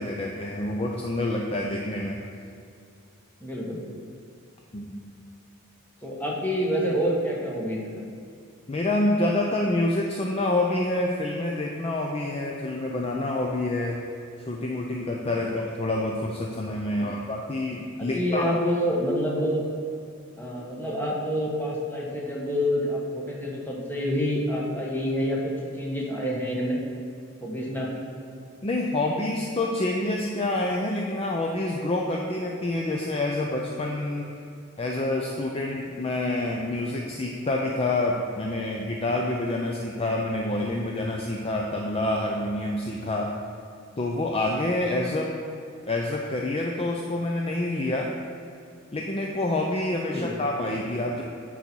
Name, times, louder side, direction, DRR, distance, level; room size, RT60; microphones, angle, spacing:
voice 1, 0.0-2.2 4.7-5.0 8.7-14.0 14.5-18.6 28.6-34.3 34.8-43.3 44.0-45.3 45.9-48.1 48.9-51.2, left 2 dB, 30° left, 0 dB, 0.5 m, -27 dB
voice 2, 3.4-3.8 6.0-8.0 17.0-17.1 18.0-19.7 20.4-26.8 27.4-28.0 50.1-50.4, equal, 10° left, -4 dB, 1.3 m, -27 dB
9.9 x 4.1 x 4.5 m, 2.5 s
head